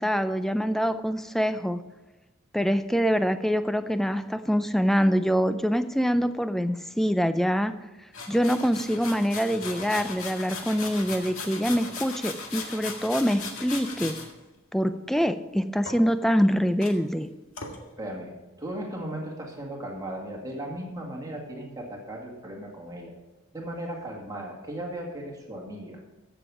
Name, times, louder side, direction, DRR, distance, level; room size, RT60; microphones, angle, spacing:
voice 1, 0.0-1.8 2.5-7.7 8.3-14.2 14.7-17.3, equal, ahead, 11 dB, 0.4 m, -25 dB
sound 1, 8.1-14.3 15.8-16.5 16.8-16.9 17.6-17.8, left 4 dB, 85° left, 1.9 m, -37 dB
voice 2, 18.0-23.1 23.5-26.0, right 1 dB, 15° right, -1 dB, 2.1 m, -36 dB
14.5 x 7.1 x 4.9 m, 1.1 s
head